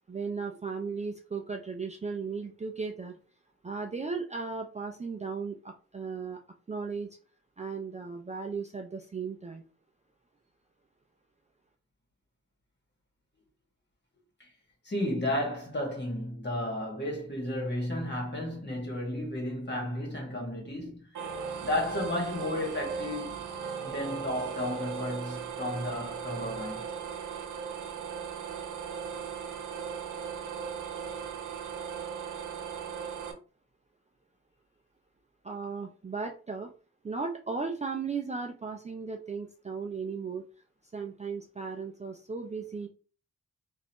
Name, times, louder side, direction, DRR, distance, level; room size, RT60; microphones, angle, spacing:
voice 1, 0.1-3.1 3.6-6.4 6.7-7.2 7.6-9.6 35.4-36.7 37.0-40.4 40.9-42.9, right 4 dB, 25° right, 0.4 m, -36 dB
voice 2, 14.8-21.3 21.6-23.4 23.8-26.9, left 1 dB, 35° left, 1.7 m, -33 dB
sound 1, 21.1-33.3, right 7 dB, 85° right, 0.7 m, -37 dB
3.9 x 2.5 x 2.9 m
cardioid pair, 90°, 30 cm